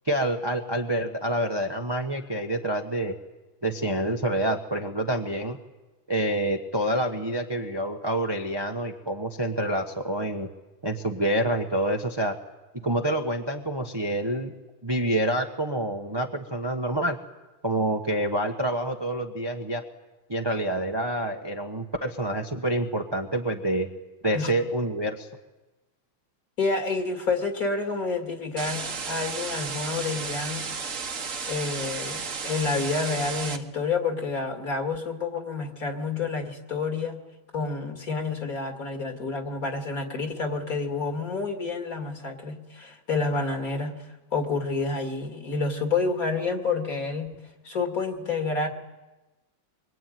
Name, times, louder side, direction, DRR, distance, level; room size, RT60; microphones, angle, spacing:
voice 1, 0.0-3.1 3.6-5.6 6.1-10.5 10.8-12.4 12.8-14.5 14.8-17.2 17.6-19.8 20.3-23.9 24.2-25.3, right 1 dB, 15° right, 4 dB, 1.1 m, -27 dB
voice 2, 26.6-30.7 31.5-37.2 37.5-43.9 44.3-47.3 47.6-48.7, left 4 dB, 45° left, 4 dB, 3.0 m, -29 dB
sound 1, 28.6-33.6, right 5 dB, 40° right, 1.6 m, -33 dB
25.0 x 23.5 x 9.4 m, 1.1 s
omnidirectional pair, 2.2 m